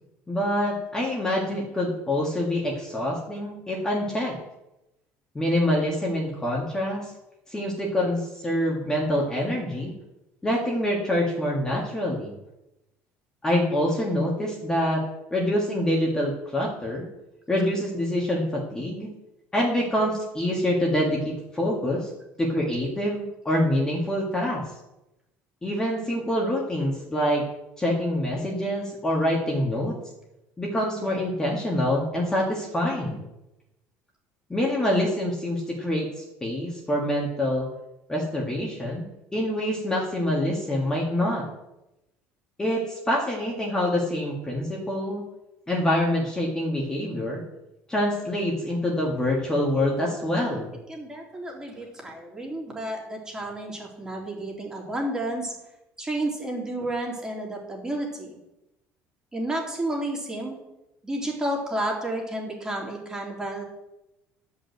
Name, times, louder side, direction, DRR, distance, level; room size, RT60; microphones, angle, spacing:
voice 1, 0.3-4.3 5.3-7.1 7.5-9.9 10.4-12.3 13.4-15.0 15.3-17.1 17.5-19.1 19.5-22.1 22.4-24.6 25.6-27.4 27.8-29.9 30.6-33.2 34.5-37.7 38.1-39.0 39.3-41.5 42.6-45.2 45.7-47.4 47.9-50.7, left 1 dB, 10° left, -3 dB, 1.9 m, -26 dB
voice 2, 50.9-55.5 56.0-58.3 59.3-60.6 61.0-63.6, right 1 dB, 15° right, -1 dB, 2.9 m, -31 dB
11.5 x 5.6 x 7.9 m, 0.92 s
cardioid pair, 145°, 5 cm